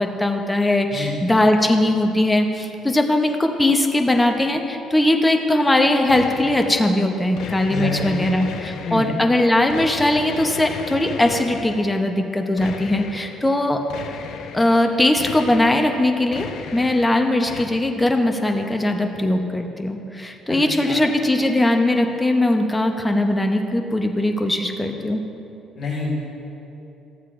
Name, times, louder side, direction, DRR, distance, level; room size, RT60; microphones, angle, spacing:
voice 1, 0.0-13.8 14.5-16.5 16.7-25.2, left 1 dB, 10° left, 4 dB, 0.7 m, -20 dB
sound 1, 6.1-6.9 7.4-9.3 9.7-12.0 12.6-13.4 13.9-14.7 15.2-16.0 16.3-17.2 17.5-17.6, left 6 dB, 70° left, 0.7 m, -35 dB
voice 2, 7.7-8.2 8.9-9.1 20.5-20.6 20.8-21.0 25.8-26.1, left 4 dB, 45° left, -6 dB, 1.8 m, -27 dB
14.5 x 7.9 x 2.5 m, 2.9 s
cardioid pair, 120°, 0 cm